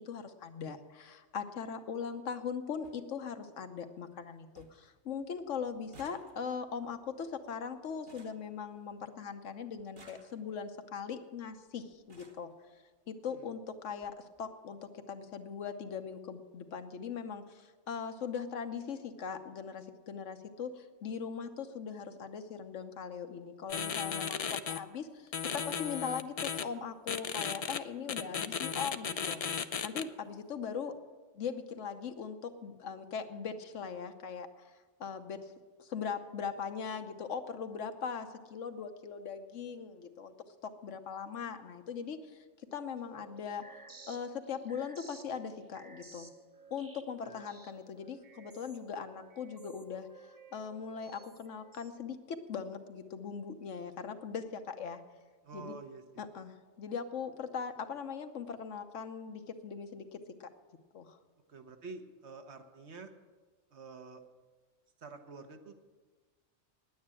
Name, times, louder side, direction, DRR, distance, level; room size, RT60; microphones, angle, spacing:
voice 1, 0.0-12.5 13.1-31.0 31.3-34.5 35.0-35.5 35.8-40.3 40.6-42.4 42.7-46.3 46.7-55.0 55.5-55.8 56.2-60.5 60.9-61.2, left 6 dB, 85° left, 8 dB, 1.2 m, -40 dB
sound 1, 2.5-2.6 2.8-3.0 3.5-4.0 4.2-4.3 4.6-4.9 5.2-9.2 9.8-10.7 11.5-11.6 11.9-12.5 13.5-13.6 13.9-14.1 14.4-14.5, right 2 dB, 45° right, 1.4 m, -60 dB
sound 2, 23.7-24.8 25.3-26.6 27.1-27.8 28.1-30.0, left 7 dB, 55° left, 0.4 m, -35 dB
sound 3, 43.0-51.9, right 4 dB, 20° right, 0.6 m, -55 dB
voice 2, 55.4-56.2 61.5-63.1 63.7-64.2 65.0-65.7, right 4 dB, 65° right, 6 dB, 1.4 m, -48 dB
9.8 x 9.4 x 8.7 m, 1.3 s
omnidirectional pair, 1.2 m